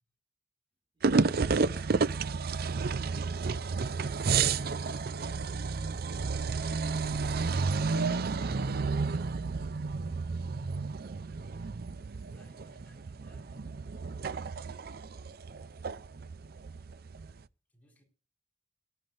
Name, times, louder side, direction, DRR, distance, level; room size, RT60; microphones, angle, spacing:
voice 1, 0.9-1.0, equal, 30° right, 2.4 m, -64 dB
sound 1, 1.0-17.4, right 4 dB, 55° right, 0.5 m, -31 dB
voice 2, 3.9-5.5 12.1-13.9 17.7-18.0, equal, 10° left, 4.6 m, -64 dB
18.5 x 12.5 x 2.6 m
head